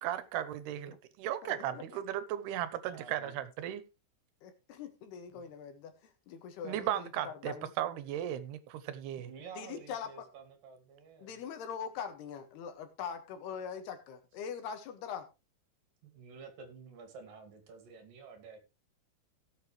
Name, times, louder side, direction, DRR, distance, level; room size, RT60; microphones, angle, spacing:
voice 1, 0.0-3.8 6.6-9.3, right 11 dB, 85° right, 13 dB, 3.0 m, -36 dB
voice 2, 1.4-2.0 3.2-3.3 4.4-5.9 6.3-7.7 9.6-10.1 11.2-15.3, left 7 dB, 80° left, 7 dB, 3.7 m, -42 dB
voice 3, 2.9-3.4 5.3-5.5 9.2-11.4 16.0-18.6, right 5 dB, 65° right, 7 dB, 3.8 m, -51 dB
17.0 x 7.7 x 3.2 m, 0.27 s
omnidirectional pair, 4.5 m